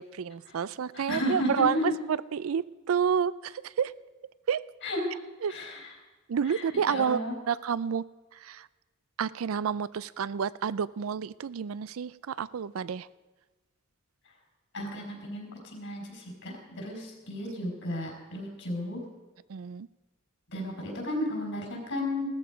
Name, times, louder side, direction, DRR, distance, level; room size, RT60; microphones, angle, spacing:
voice 1, 0.0-3.9 4.5-4.6 5.4-5.5 6.3-8.0 8.4-8.7 9.2-13.1 19.5-19.9, right 7 dB, 70° right, 19 dB, 0.4 m, -29 dB
voice 2, 0.9-2.0 4.8-5.0 5.5-5.9 6.5-6.6 6.9-7.3 14.7-19.0 20.5-22.3, left 1 dB, 60° left, 1 dB, 4.8 m, -33 dB
17.0 x 13.5 x 5.0 m, 1.2 s
head